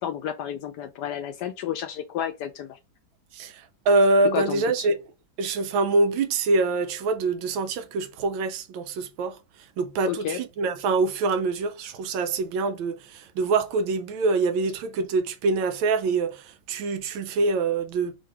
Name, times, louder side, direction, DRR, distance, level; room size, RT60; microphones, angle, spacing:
voice 1, 0.0-2.8 4.3-4.9 10.1-10.4, left 10 dB, 75° left, 1.0 m, -31 dB
voice 2, 3.3-5.0 5.4-9.4 9.8-18.2, right 3 dB, 90° right, 1.4 m, -25 dB
3.7 x 2.6 x 4.6 m
omnidirectional pair, 2.1 m